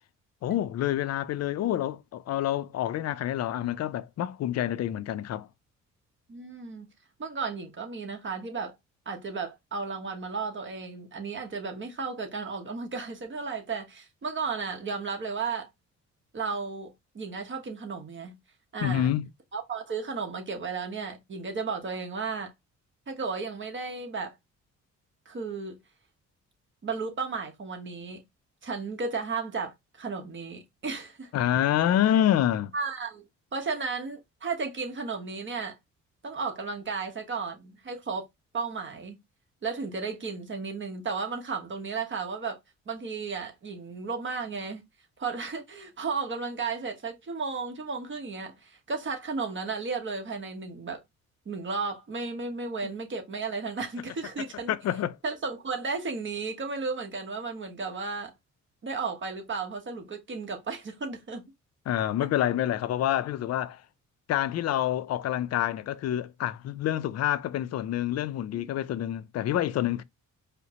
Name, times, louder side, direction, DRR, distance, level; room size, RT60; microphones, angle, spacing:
voice 1, 0.4-5.5 18.8-19.3 31.3-32.7 54.7-55.2 61.9-63.8 64.3-70.0, left 11 dB, 55° left, 0.5 m, -27 dB
voice 2, 6.3-6.9 7.2-8.7 9.0-15.7 16.3-18.4 18.7-19.1 19.5-22.5 23.1-24.3 25.2-25.8 26.8-28.2 28.6-31.3 32.7-35.8 36.2-38.3 38.5-39.2 39.6-42.6 42.9-44.8 45.2-51.0 51.4-54.8 55.2-58.3 58.8-61.4 68.5-68.6, right 4 dB, 40° right, 1.2 m, -34 dB
4.9 x 2.1 x 2.8 m
cardioid pair, 90°, 30 cm